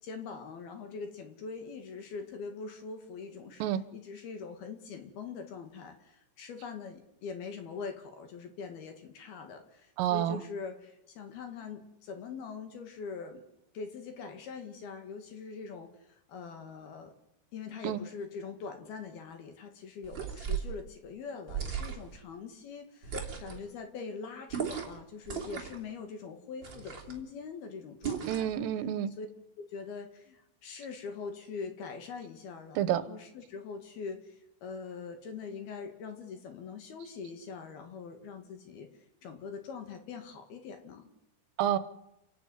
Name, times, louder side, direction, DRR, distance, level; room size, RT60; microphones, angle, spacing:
voice 1, 0.0-3.6 3.9-13.4 13.7-17.1 17.5-28.5 29.2-29.3 29.6-41.1, left 5 dB, 60° left, 7 dB, 3.4 m, -43 dB
voice 2, 10.0-10.4 17.8-18.0 28.3-29.1 32.8-33.0 41.6-41.8, right 11 dB, 80° right, 14 dB, 3.6 m, -29 dB
sound 1, 20.0-20.7 21.5-22.2 23.0-23.6 24.5-25.0 25.2-25.8 26.6-27.2 28.0-28.6, right 7 dB, 25° right, 3.0 m, -36 dB
29.0 x 11.5 x 9.6 m, 0.84 s
omnidirectional pair, 5.9 m